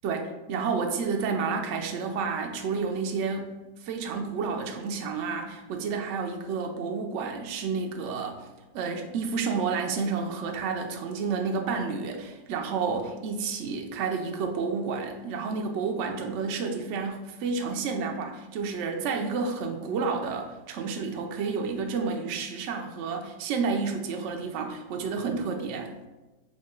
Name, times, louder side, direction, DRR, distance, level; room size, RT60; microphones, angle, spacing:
voice 1, 0.0-3.5 3.8-8.5 8.7-25.9, right 5 dB, 75° right, 3 dB, 0.6 m, -30 dB
4.8 x 2.3 x 3.6 m, 1.1 s
omnidirectional pair, 1.7 m